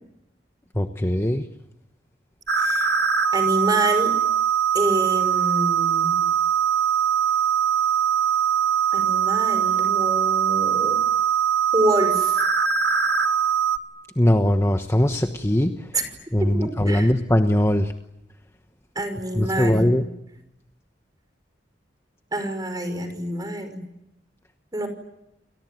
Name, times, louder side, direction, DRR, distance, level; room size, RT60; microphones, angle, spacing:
voice 1, 0.7-1.5 14.2-15.9 16.3-17.9 19.3-20.0, left 1 dB, 15° left, 6 dB, 1.1 m, -20 dB
sound 1, 2.5-13.8, right 8 dB, 65° right, 1.8 m, -21 dB
voice 2, 2.6-2.9 3.3-4.1 4.7-6.1 8.9-11.0 11.7-12.4 15.9-16.0 16.4-17.1 19.0-20.0 22.3-23.8 24.7-24.9, right 1 dB, 20° right, 8 dB, 5.7 m, -27 dB
29.5 x 21.5 x 9.4 m, 0.85 s
head